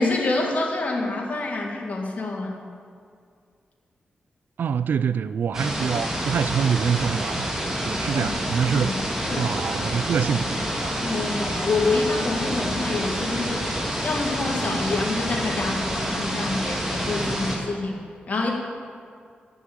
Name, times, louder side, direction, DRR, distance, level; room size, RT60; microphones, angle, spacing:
voice 1, 0.0-2.6 8.1-8.3 8.8-8.9 9.2-9.5 10.2-10.3 11.0-13.7 14.0-18.0 18.3-18.5, left 3 dB, 50° left, 0 dB, 2.1 m, -27 dB
voice 2, 4.6-8.9 9.4-11.0, right 7 dB, 70° right, 14 dB, 0.4 m, -25 dB
sound 1, 5.5-17.6, equal, 10° right, 2.0 m, -28 dB
11.0 x 6.3 x 8.7 m, 2.2 s
wide cardioid pair, 110°, 3 cm